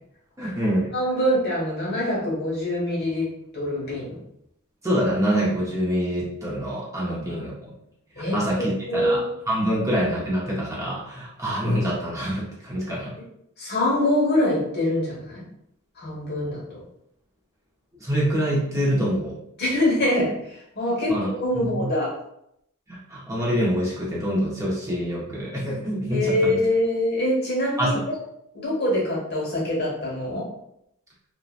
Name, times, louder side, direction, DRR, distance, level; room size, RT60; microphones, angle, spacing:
voice 1, 0.4-0.9 4.8-7.7 8.2-13.1 17.9-19.4 21.1-21.3 21.5-21.9 22.9-26.6 27.8-27.9, equal, 15° right, -6 dB, 0.6 m, -26 dB
voice 2, 0.9-3.3 3.5-4.1 7.3-7.4 8.1-8.4 8.9-9.3 9.7-9.8 13.6-15.4 16.0-16.8 19.6-22.1 26.1-28.0 28.5-30.5, left 1 dB, 50° left, -4 dB, 1.0 m, -24 dB
2.7 x 2.1 x 2.4 m, 0.77 s
head